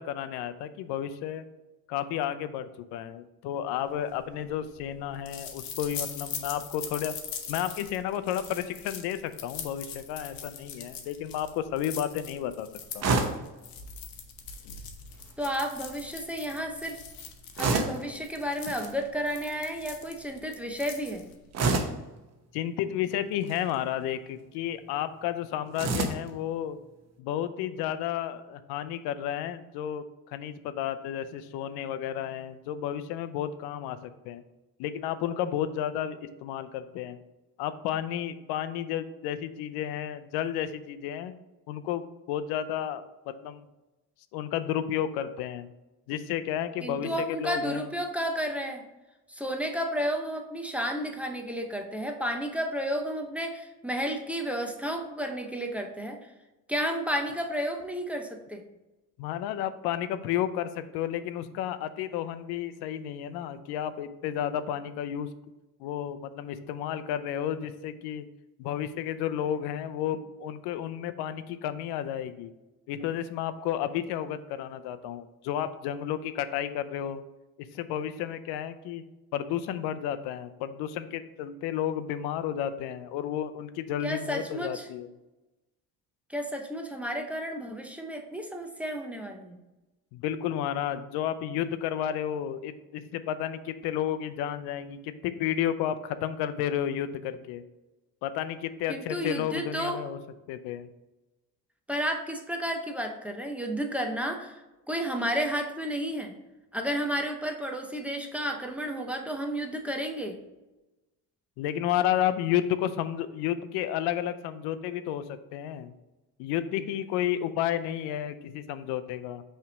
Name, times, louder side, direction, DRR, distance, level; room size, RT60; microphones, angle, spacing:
voice 1, 0.0-1.4 1.9-7.2 7.5-12.7 12.9-13.0 22.5-26.8 27.2-34.4 34.8-37.2 37.6-41.3 41.7-42.0 42.3-43.6 44.3-45.7 46.1-47.9 59.2-65.3 65.8-68.3 68.6-72.5 72.9-77.2 77.6-79.0 79.3-85.1 90.1-97.6 98.2-100.2 100.5-100.9 111.6-115.9 116.4-119.4, left 10 dB, 85° left, 12 dB, 0.6 m, -32 dB
sound 1, 4.0-21.5, left 7 dB, 65° left, 1.0 m, -42 dB
sound 2, 13.0-13.5 15.1-15.5 17.6-18.1 18.7-18.9 21.5-22.0 23.3-23.8 25.8-26.3, right 3 dB, 45° right, 0.9 m, -28 dB
voice 2, 15.4-17.0 17.6-21.3 46.8-48.8 49.3-56.2 56.7-58.6 84.0-84.9 86.3-89.6 98.9-100.0 101.9-104.6 104.9-106.3 106.7-110.4, equal, 5° right, 3 dB, 0.6 m, -32 dB
5.6 x 3.4 x 5.0 m, 1.0 s
cardioid pair, 115°, 38 cm